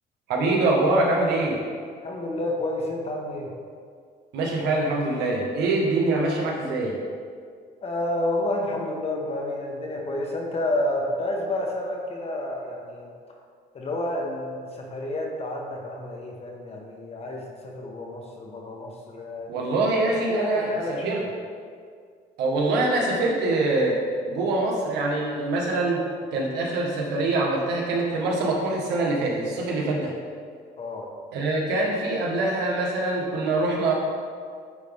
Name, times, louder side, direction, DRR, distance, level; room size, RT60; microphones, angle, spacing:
voice 1, 0.3-1.6 4.3-6.9 19.5-21.2 22.4-24.0 24.3-26.0 26.3-30.1 31.3-33.9, right 2 dB, 80° right, -2 dB, 1.4 m, -24 dB
voice 2, 2.0-3.5 7.8-13.1 13.7-19.5 20.3-21.3 30.8-31.1, left 1 dB, 35° left, -1 dB, 1.3 m, -30 dB
9.3 x 4.1 x 3.5 m, 2.1 s
cardioid pair, 110°, 17 cm